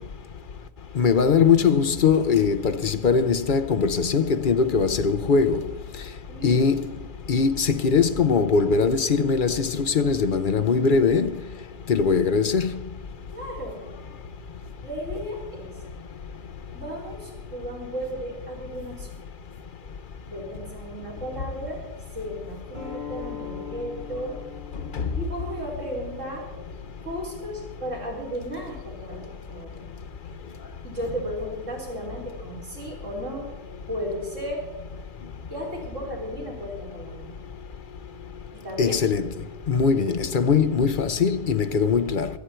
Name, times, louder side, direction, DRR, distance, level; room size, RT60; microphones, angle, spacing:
voice 1, 1.0-5.6 6.4-6.8 7.3-11.3 11.9-12.7 38.8-39.2 39.7-42.3, left 5 dB, 50° left, 0.7 m, -21 dB
voice 2, 6.3-6.7 13.3-13.8 14.8-15.7 16.7-19.1 20.3-21.8 22.1-24.3 25.2-26.5 27.0-29.9 30.8-33.5 33.9-34.6 35.5-37.3 38.5-38.9, equal, 85° right, 4.4 m, -34 dB
sound 1, 22.7-27.9, left 7 dB, 60° right, 4.7 m, -42 dB
25.0 x 9.0 x 4.5 m
omnidirectional pair, 1.3 m